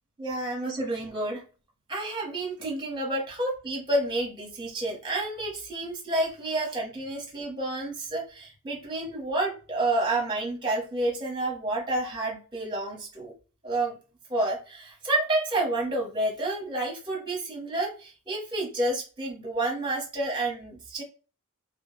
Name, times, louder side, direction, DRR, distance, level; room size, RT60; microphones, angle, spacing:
voice 1, 0.2-1.4 1.9-13.3 13.6-14.0 14.3-21.0, right 2 dB, 20° right, -1 dB, 0.8 m, -29 dB
2.2 x 2.0 x 3.0 m, 0.35 s
head